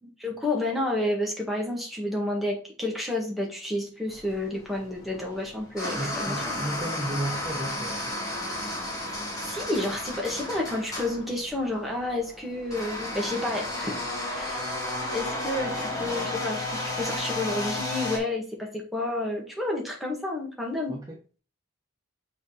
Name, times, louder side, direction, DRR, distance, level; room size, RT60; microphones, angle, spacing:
voice 1, 0.0-6.5 9.4-14.0 14.3-14.6 14.9-21.0, left 1 dB, ahead, 1.8 m, -30 dB
sound 1, 4.1-18.2, left 1 dB, 15° left, 2.1 m, -33 dB
voice 2, 5.9-8.2 20.9-21.2, right 1 dB, 15° right, 0.7 m, -34 dB
6.4 x 3.9 x 5.0 m
head